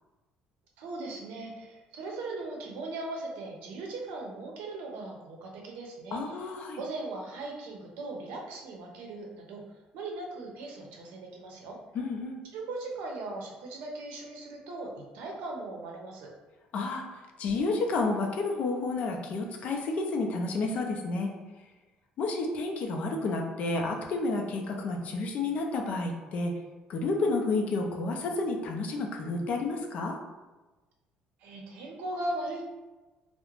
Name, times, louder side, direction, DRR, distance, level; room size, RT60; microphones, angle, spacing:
voice 1, 0.8-9.6 9.9-11.8 12.5-16.3 31.4-32.7, right 2 dB, 80° right, 0 dB, 0.6 m, -39 dB
voice 2, 6.1-6.8 11.9-12.4 16.7-17.0 17.4-21.3 22.2-26.5 26.9-30.1, left 3 dB, 55° left, 2 dB, 0.4 m, -30 dB
2.4 x 2.0 x 3.0 m, 1.2 s
cardioid pair, 105°, 3 cm